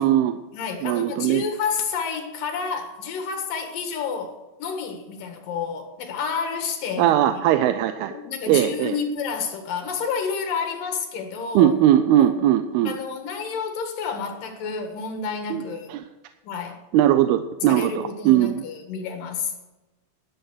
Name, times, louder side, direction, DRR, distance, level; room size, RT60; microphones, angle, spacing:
voice 1, 0.0-0.4 0.8-1.4 7.0-8.1 8.5-9.0 11.6-12.9 15.5-15.6 15.9-16.0 16.9-18.6, right 12 dB, 80° right, 9 dB, 2.5 m, -19 dB
voice 2, 0.5-7.4 8.1-11.7 12.2-12.3 12.8-15.9 16.4-16.8 17.7-19.5, left 5 dB, 65° left, 4 dB, 3.1 m, -30 dB
11.5 x 11.0 x 6.2 m, 1.1 s
omnidirectional pair, 4.6 m